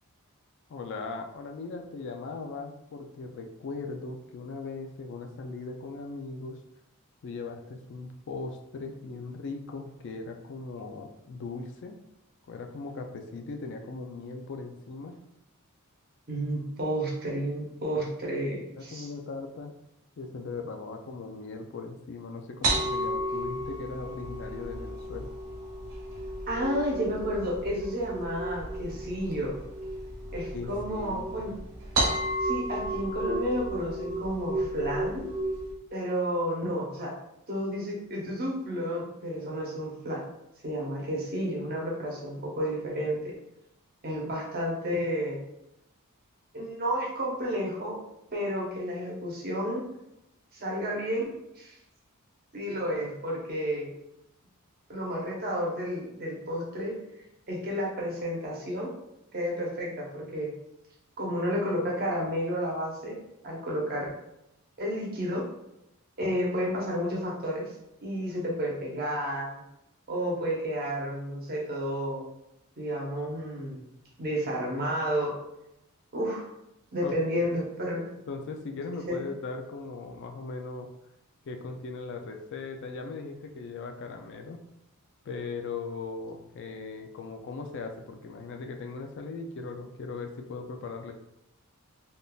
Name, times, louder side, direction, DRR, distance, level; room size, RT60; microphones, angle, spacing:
voice 1, 0.7-6.6 7.2-12.0 12.5-15.2 18.8-19.8 20.2-25.3 30.5-31.5 77.0-77.6 78.3-80.9 81.5-84.6 85.3-91.1, left 3 dB, 55° left, 5 dB, 0.4 m, -39 dB
voice 2, 16.3-19.1 26.5-29.6 30.3-31.6 32.4-35.3 35.9-37.1 37.5-40.2 40.6-43.2 44.0-45.4 46.5-48.0 48.3-49.9 50.5-51.3 51.6-51.8 52.5-53.9 54.9-57.0 57.5-58.9 59.3-60.5 61.2-63.2 63.4-64.1 64.8-65.5 66.2-67.7 68.0-69.6 70.1-72.3 72.8-73.8 74.2-75.4 76.1-76.5 76.9-78.1 79.1-79.2, equal, 45° right, -2 dB, 0.8 m, -31 dB
sound 1, 22.6-35.7, right 1 dB, 85° right, 1.1 m, -33 dB
3.5 x 2.6 x 2.3 m, 0.85 s
head